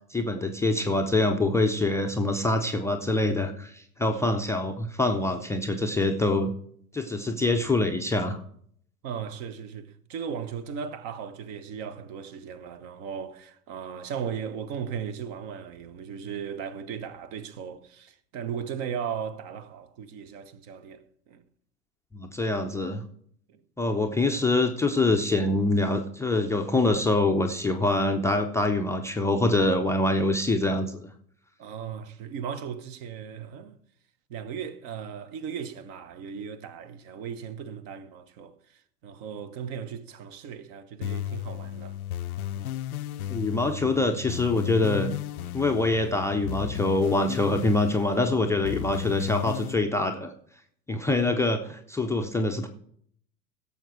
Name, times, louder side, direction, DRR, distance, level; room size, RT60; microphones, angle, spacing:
voice 1, 0.1-6.5 6.9-8.4 22.1-23.0 23.8-31.1 43.3-45.1 45.5-50.3 50.9-52.7, left 2 dB, 5° left, 0.6 m, -25 dB
voice 2, 9.0-21.4 23.5-23.6 31.6-33.8 34.3-42.0 42.5-42.8 43.5-43.9, right 7 dB, 45° right, 1.1 m, -37 dB
sound 1, 41.0-49.7, left 12 dB, 70° left, 0.6 m, -34 dB
16.5 x 7.1 x 4.7 m
figure-of-eight pair, 85°, 46 cm